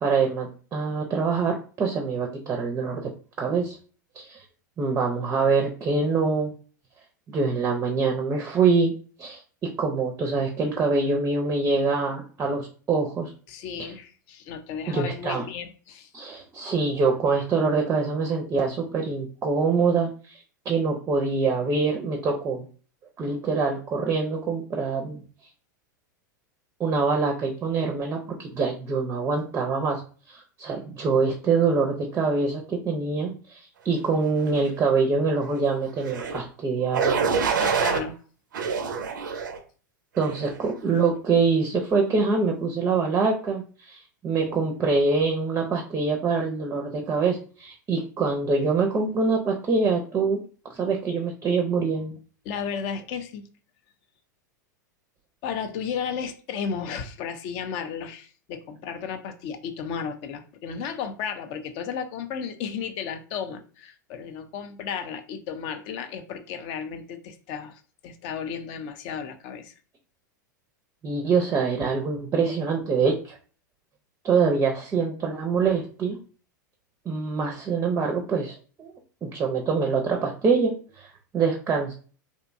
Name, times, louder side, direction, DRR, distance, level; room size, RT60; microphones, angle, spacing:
voice 1, 0.0-3.0 3.4-3.8 4.2-4.4 4.8-6.5 7.3-8.9 9.2-9.4 9.8-13.3 13.8-13.9 14.9-15.4 16.1-20.4 20.7-22.7 23.2-25.2 26.8-30.0 30.3-37.2 40.2-50.4 50.7-52.2 71.0-73.4 74.2-76.2 77.1-78.9 79.2-81.1 81.3-81.9, right 4 dB, 25° right, 0.5 m, -25 dB
voice 2, 13.5-16.1 37.5-38.2 52.4-53.5 55.4-69.8, left 7 dB, 50° left, 0.4 m, -34 dB
sound 1, 36.0-36.4 36.9-38.0 38.5-39.6 40.2-40.5, right 6 dB, 75° right, 0.4 m, -26 dB
2.6 x 2.1 x 2.5 m
hypercardioid pair, 100°, 10 cm